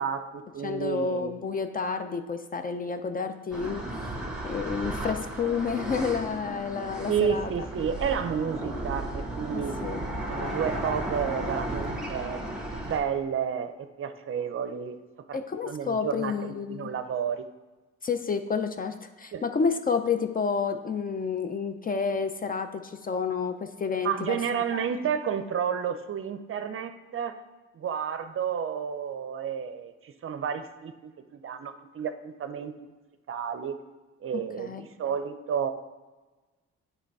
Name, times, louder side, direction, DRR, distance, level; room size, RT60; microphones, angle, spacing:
voice 1, 0.0-1.4 7.1-9.7 10.3-12.4 12.8-15.0 15.3-15.4 15.6-17.4 19.3-19.4 24.0-27.4 27.7-31.1 31.4-32.9 33.3-33.7 34.2-35.7, right 7 dB, 45° right, 9 dB, 0.5 m, -31 dB
voice 2, 0.6-3.8 4.4-7.5 9.5-10.0 15.3-16.9 18.0-24.4 24.8-24.9 34.3-34.9, left 5 dB, 30° left, 9 dB, 0.4 m, -30 dB
sound 1, 3.5-13.0, right 1 dB, ahead, 1.3 m, -34 dB
8.3 x 3.3 x 4.7 m, 1.2 s
cardioid pair, 90°, 30 cm